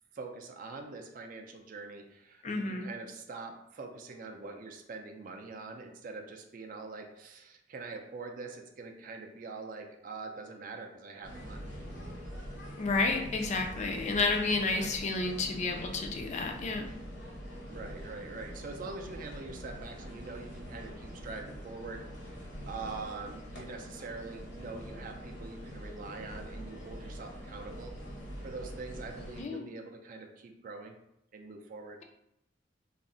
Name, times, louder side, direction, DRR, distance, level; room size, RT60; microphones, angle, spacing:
voice 1, 0.1-11.7 14.7-15.0 17.7-28.0 28.4-30.9 31.3-32.0, right 3 dB, 45° right, 3 dB, 0.4 m, -44 dB
voice 2, 2.4-2.9 12.8-16.9 29.4-29.7, left 3 dB, 40° left, 3 dB, 0.3 m, -31 dB
sound 1, 11.2-29.4, equal, 65° left, 0.8 m, -44 dB
2.4 x 2.0 x 3.7 m, 0.81 s
head